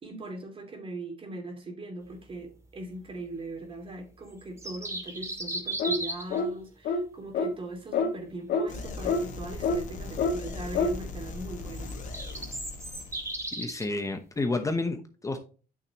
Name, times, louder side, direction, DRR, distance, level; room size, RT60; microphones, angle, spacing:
voice 1, 0.0-11.9, right 2 dB, 30° right, 2.7 m, -40 dB
sound 1, 4.4-6.4 11.8-13.9, right 1 dB, 15° right, 2.3 m, -35 dB
sound 2, 5.8-6.0 6.3-6.5 6.8-7.0 7.3-7.5 7.9-8.1 8.5-8.7 9.0-9.2 9.6-9.8 10.2-10.4 10.7-10.9, left 4 dB, 70° left, 1.9 m, -26 dB
sound 3, 8.7-13.5, left 3 dB, 45° left, 2.0 m, -39 dB
voice 2, 13.6-15.4, left 2 dB, 20° left, 0.9 m, -30 dB
8.9 x 6.6 x 3.0 m
cardioid pair, 110°, 17 cm